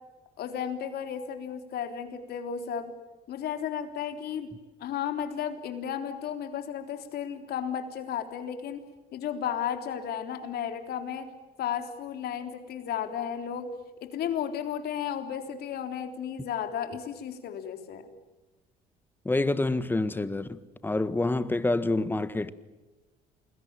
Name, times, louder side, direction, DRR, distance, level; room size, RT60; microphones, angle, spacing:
voice 1, 0.4-2.9 3.3-4.5 4.8-8.8 9.1-11.3 11.6-13.7 14.0-18.1, left 8 dB, 70° left, 3.7 m, -34 dB
voice 2, 19.2-22.5, left 2 dB, 10° left, 1.5 m, -27 dB
28.5 x 21.0 x 9.0 m
cardioid pair, 110°, 17 cm